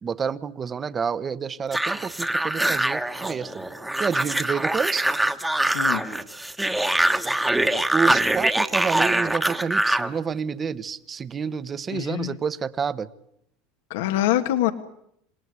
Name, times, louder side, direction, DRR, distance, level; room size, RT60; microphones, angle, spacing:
voice 1, 0.0-3.7 4.0-5.1 7.9-13.1, right 6 dB, 20° right, 16 dB, 1.0 m, -29 dB
sound 1, 1.7-10.1, right 1 dB, 5° right, 1.3 m, -23 dB
voice 2, 11.9-12.4 13.9-14.7, left 13 dB, 80° left, 8 dB, 1.6 m, -24 dB
27.5 x 18.5 x 9.6 m, 0.76 s
supercardioid pair, 145°, 0 cm